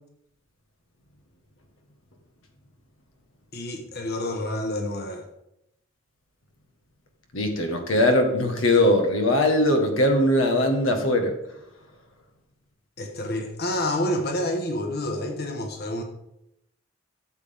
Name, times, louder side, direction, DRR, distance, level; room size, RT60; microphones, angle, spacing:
voice 1, 3.5-5.3 13.0-16.0, left 1 dB, 55° left, 3 dB, 1.4 m, -28 dB
voice 2, 7.3-11.4, left 1 dB, 85° left, 4 dB, 1.6 m, -21 dB
13.0 x 7.5 x 3.6 m, 0.80 s
head